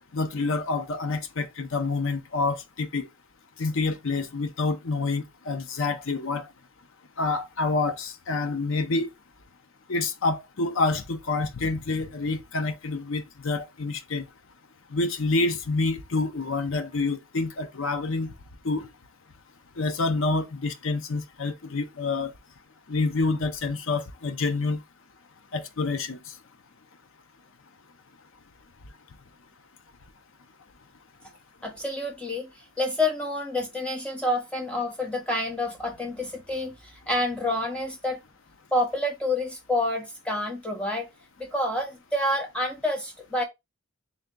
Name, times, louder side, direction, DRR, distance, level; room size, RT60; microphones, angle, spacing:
voice 1, 0.1-3.1 3.6-6.5 7.2-9.1 9.9-14.2 14.9-18.3 18.6-18.9 19.8-22.3 22.9-24.8 25.5-26.2, left 3 dB, 60° left, 0.6 m, -27 dB
voice 2, 31.6-32.5 32.8-36.7 37.1-38.2 38.7-41.1 41.4-43.4, left 1 dB, 5° left, 0.8 m, -28 dB
3.4 x 2.7 x 3.6 m
head